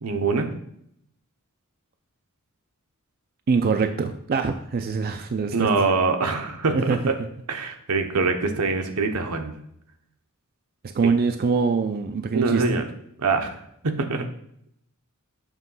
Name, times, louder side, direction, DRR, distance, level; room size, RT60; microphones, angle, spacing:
voice 1, 0.0-0.5 5.5-6.8 7.1-7.2 7.5-9.5 12.3-12.8 13.2-14.3, right 4 dB, 80° right, 5 dB, 0.9 m, -24 dB
voice 2, 3.5-5.7 6.7-7.0 10.9-12.6, right 5 dB, 45° right, 7 dB, 0.4 m, -23 dB
7.4 x 3.1 x 5.4 m, 0.71 s
head